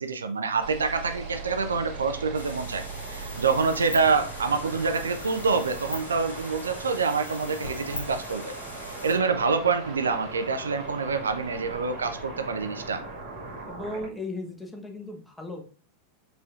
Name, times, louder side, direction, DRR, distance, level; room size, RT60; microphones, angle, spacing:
voice 1, 0.0-8.5 8.8-13.0, right 4 dB, 70° right, 9 dB, 0.4 m, -26 dB
sound 1, 0.6-14.1, right 3 dB, 45° right, 1.7 m, -39 dB
sound 2, 2.3-9.1, left 2 dB, 75° left, 1.3 m, -42 dB
voice 2, 13.6-15.6, left 2 dB, 5° left, 2 dB, 0.9 m, -36 dB
4.7 x 4.4 x 2.4 m, 0.39 s
figure-of-eight pair, 90°, 0 cm